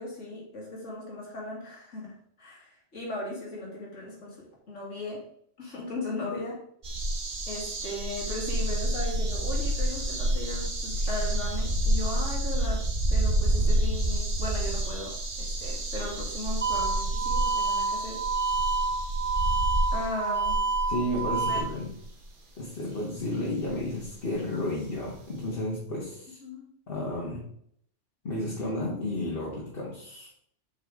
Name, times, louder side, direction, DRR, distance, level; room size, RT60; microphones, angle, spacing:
voice 1, 0.0-5.2 5.6-6.6 7.5-12.8 13.1-18.2 19.9-20.6 21.5-21.6 22.9-23.0 26.4-26.7, left 2 dB, 80° left, -2 dB, 2.3 m, -37 dB
sound 1, 6.8-22.0 23.6-23.7 24.0-24.1, right 1 dB, 45° right, 1.2 m, -29 dB
sound 2, 16.6-21.6, right 4 dB, 15° right, 0.5 m, -28 dB
voice 2, 20.9-21.9 22.6-26.4 26.9-27.4 28.2-30.3, left 1 dB, 50° left, -5 dB, 1.7 m, -32 dB
7.6 x 4.7 x 3.6 m, 0.67 s
omnidirectional pair, 1.2 m